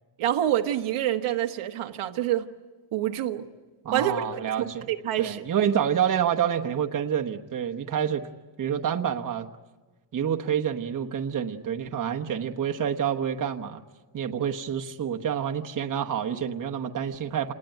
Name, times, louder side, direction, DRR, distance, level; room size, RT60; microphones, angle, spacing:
voice 1, 0.2-2.5 2.9-3.5 3.9-4.1 4.6-5.4, right 12 dB, 80° right, 5 dB, 1.3 m, -27 dB
voice 2, 3.8-4.9 5.2-8.3 8.6-9.5 10.1-13.8 14.1-17.5, right 8 dB, 40° right, 3 dB, 1.1 m, -28 dB
27.5 x 19.5 x 9.1 m, 1.3 s
cardioid pair, 140°, 49 cm